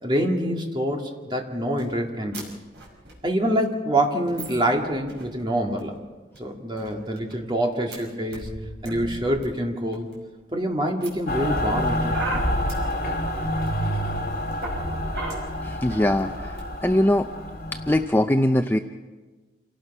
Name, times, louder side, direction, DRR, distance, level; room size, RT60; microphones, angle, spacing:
voice 1, 0.0-2.5 3.2-5.9 6.4-8.5 8.8-10.1 10.5-12.4, right 1 dB, 25° right, 1 dB, 2.3 m, -26 dB
sound 1, 1.8-1.9 2.3-2.4 2.6-3.1 3.6-3.7 4.3-5.4 5.8-6.0 6.3-6.4 6.7-7.3 7.9-8.0 8.3-9.4 9.9-10.4 11.0-12.9 13.7-13.8 14.1-15.4 15.9-16.0 16.2-16.6, right 1 dB, 65° right, 5.6 m, -34 dB
Mechanical fan, 11.3-18.1, left 1 dB, 50° left, 3.0 m, -28 dB
voice 2, 15.6-17.3 17.9-18.8, left 1 dB, 10° left, 6 dB, 0.5 m, -21 dB
28.0 x 18.0 x 5.5 m, 1.3 s
head